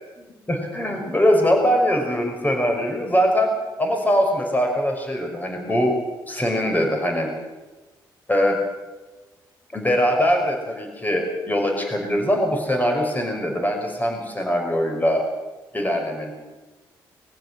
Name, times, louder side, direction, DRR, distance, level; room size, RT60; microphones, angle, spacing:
voice 1, 0.2-3.5 3.8-5.9 6.3-7.3 8.3-8.6 9.7-15.2 15.7-16.3, equal, 20° left, 3 dB, 5.6 m, -22 dB
22.5 x 15.0 x 7.7 m, 1.2 s
supercardioid pair, 60°, 9 cm